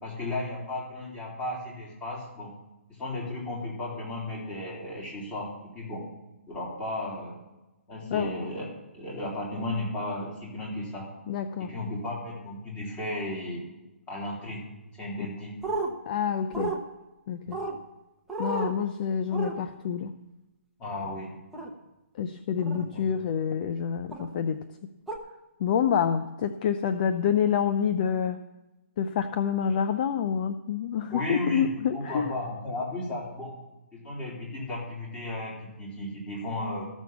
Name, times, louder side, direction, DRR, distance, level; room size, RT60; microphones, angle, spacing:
voice 1, 0.0-2.5 3.0-6.0 6.5-7.3 7.9-8.7 8.9-11.1 11.6-13.6 14.1-14.6 15.0-15.5 17.5-17.6 20.8-21.3 22.9-23.0 31.1-31.7 31.9-33.5 33.9-36.8, left 1 dB, 15° left, -4 dB, 3.5 m, -34 dB
voice 2, 11.3-11.7 16.1-16.7 17.3-17.6 18.4-20.1 22.2-24.6 25.6-28.4 29.0-32.3, left 7 dB, 35° left, 10 dB, 0.6 m, -27 dB
sound 1, 15.6-15.9 16.5-16.8 17.5-17.8 18.3-18.7 19.3-19.5 21.5-21.7 22.6-22.8 24.1-24.3 25.1-25.2, right 3 dB, ahead, 1.0 m, -31 dB
13.5 x 6.3 x 7.1 m, 1.0 s
hypercardioid pair, 150°, 7 cm